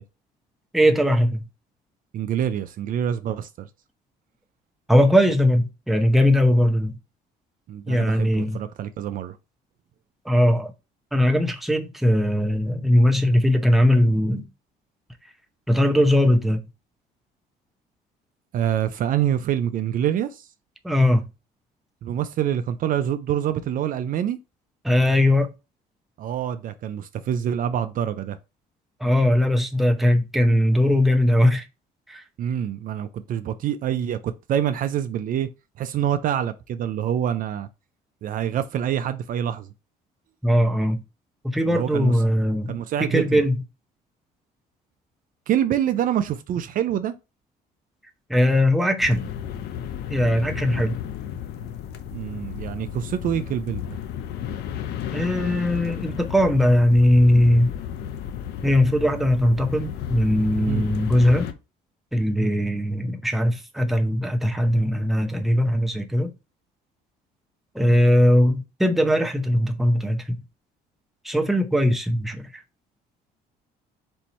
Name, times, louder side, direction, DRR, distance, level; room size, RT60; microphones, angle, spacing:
voice 1, 0.7-1.4 4.9-7.0 7.9-8.6 10.2-10.7 11.1-14.4 15.7-16.6 20.8-21.2 24.8-25.5 29.0-31.7 32.1-32.2 40.4-41.0 41.4-43.6 48.3-49.3 50.1-51.0 55.1-57.7 58.6-61.5 62.1-66.3 67.7-70.4 71.2-72.6, left 1 dB, ahead, 0.7 m, -20 dB
voice 2, 2.1-3.7 7.7-9.4 18.5-20.5 22.0-24.4 26.2-28.4 32.4-35.5 35.8-37.7 38.2-39.7 41.7-42.1 42.7-43.4 45.5-47.1 52.1-53.8 60.7-60.8 62.4-62.5, right 10 dB, 55° right, 0.4 m, -26 dB
sound 1, 49.0-61.5, left 9 dB, 75° left, 0.6 m, -33 dB
4.4 x 2.6 x 4.2 m
cardioid pair, 110°, 17 cm